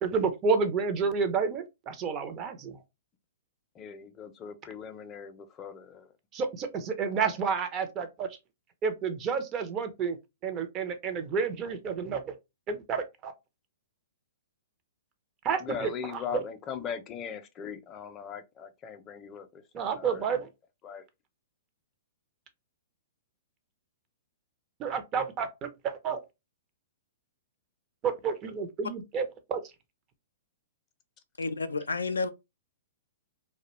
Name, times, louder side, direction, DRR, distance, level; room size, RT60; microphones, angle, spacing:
voice 1, 0.0-2.8 6.3-8.3 8.8-10.2 10.4-12.3 12.7-13.3 15.4-16.4 19.7-20.5 24.8-26.2 28.0-29.6, right 5 dB, 30° right, 0.5 m, -30 dB
voice 2, 3.8-6.1 7.2-7.3 15.6-20.2 20.8-21.0, left 7 dB, 25° left, 0.5 m, -40 dB
voice 3, 31.4-32.3, left 4 dB, 90° left, 0.3 m, -30 dB
2.3 x 2.1 x 2.9 m
hypercardioid pair, 120°, 0 cm